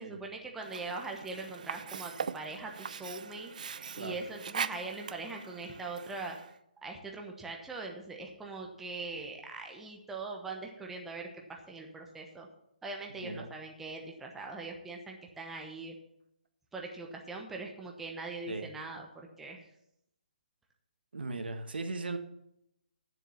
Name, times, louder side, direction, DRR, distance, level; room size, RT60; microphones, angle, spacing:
voice 1, 0.0-6.4 6.8-12.5 12.8-15.9 16.7-19.6, right 3 dB, 5° right, 1 dB, 1.0 m, -42 dB
Sink (filling or washing), 0.6-6.6, right 6 dB, 55° right, 0.5 m, -41 dB
voice 2, 13.1-13.5 18.5-18.7 21.1-22.2, right 3 dB, 90° right, 7 dB, 1.5 m, -38 dB
9.2 x 7.4 x 7.0 m, 0.78 s
hypercardioid pair, 165°, 5 cm